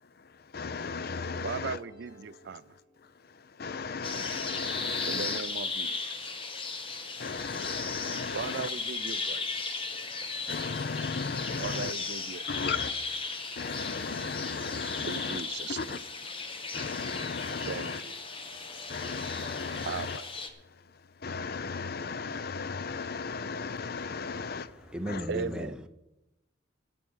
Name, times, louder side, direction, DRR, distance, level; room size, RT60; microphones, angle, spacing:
voice 1, 0.5-1.8 3.6-5.4 7.2-8.7 10.5-11.9 12.5-12.9 13.6-15.4 15.7-16.0 16.7-18.0 18.9-20.2 21.2-24.7 25.1-25.2, left 5 dB, 50° left, 0.5 m, -35 dB
sound 1, 0.7-3.6, equal, 80° left, 4.6 m, -54 dB
voice 2, 1.4-2.7 5.1-6.3 8.3-9.7 11.6-12.7 15.1-16.0 17.7-18.2 19.9-20.4 25.3-25.7, right 5 dB, 55° right, 0.4 m, -38 dB
sound 2, 4.0-20.5, left 4 dB, 25° left, 1.1 m, -36 dB
voice 3, 24.4-25.9, equal, 5° right, 0.6 m, -36 dB
14.5 x 7.7 x 6.3 m
head